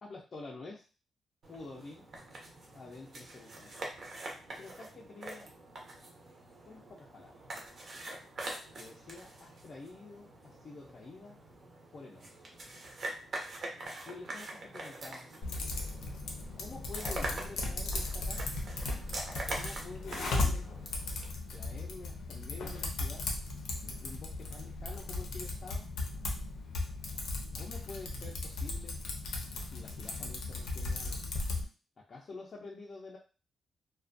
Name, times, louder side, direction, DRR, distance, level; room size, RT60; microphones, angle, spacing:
voice 1, 0.0-0.8 1.5-2.0 2.7-3.7 4.6-5.5 6.7-7.4 8.8-11.4 11.9-12.3 14.1-15.3 16.6-18.4 19.5-20.7 21.5-23.3 23.8-25.9 27.6-29.0 29.7-31.2 32.0-33.2, left 3 dB, 35° left, -4 dB, 0.4 m, -48 dB
sound 1, 1.4-21.3, right 2 dB, 45° right, 0.6 m, -44 dB
Typing, 15.4-31.6, left 3 dB, 90° left, 0.5 m, -37 dB
2.4 x 2.2 x 2.4 m, 0.34 s
wide cardioid pair, 165°, 0 cm